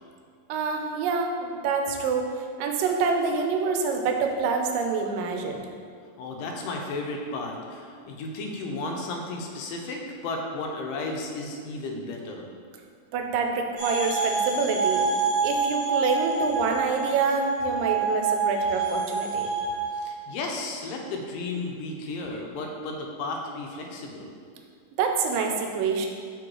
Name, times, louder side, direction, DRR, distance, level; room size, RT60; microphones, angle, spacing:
voice 1, 0.5-2.3 2.6-5.6 13.1-15.1 15.4-19.5 25.0-26.1, right 5 dB, 90° right, 4 dB, 2.3 m, -26 dB
voice 2, 6.2-12.5 19.9-24.3, left 2 dB, 85° left, 1 dB, 2.3 m, -34 dB
sound 1, 13.8-19.9, right 4 dB, 45° right, 1.6 m, -27 dB
5.3 x 3.8 x 4.6 m, 2.1 s
omnidirectional pair, 3.8 m